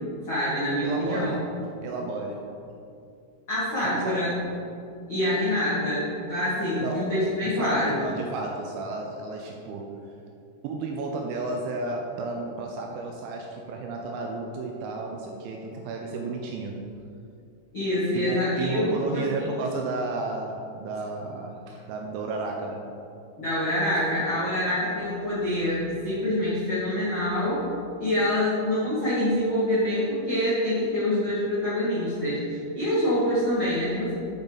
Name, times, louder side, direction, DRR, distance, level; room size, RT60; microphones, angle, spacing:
voice 1, 0.2-1.3 3.5-4.3 5.1-8.0 17.7-19.2 23.4-27.7 28.0-34.1, left 1 dB, 60° left, -11 dB, 1.3 m, -26 dB
voice 2, 0.8-1.4 1.8-2.6 3.8-4.2 6.8-7.1 7.4-10.0 10.6-16.8 18.1-22.8, right 3 dB, 80° right, 1 dB, 2.8 m, -32 dB
9.9 x 7.1 x 4.0 m, 2.6 s
omnidirectional pair, 5.9 m